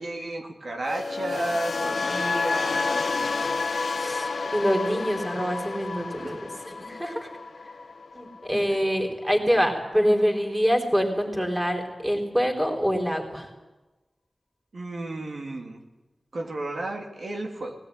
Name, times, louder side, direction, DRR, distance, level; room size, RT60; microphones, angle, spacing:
voice 1, 0.0-3.3 3.5-3.6 6.2-6.4 8.5-8.8 14.7-15.8 16.3-17.7, right 2 dB, 70° right, 1 dB, 3.0 m, -33 dB
sound 1, 0.8-9.0 9.2-9.6, left 4 dB, 75° left, 1.1 m, -30 dB
voice 2, 2.0-2.4 4.0-7.3 8.1-13.5, equal, 10° right, 3 dB, 4.3 m, -25 dB
19.5 x 18.0 x 10.0 m, 1.1 s
wide cardioid pair, 90°, 0 cm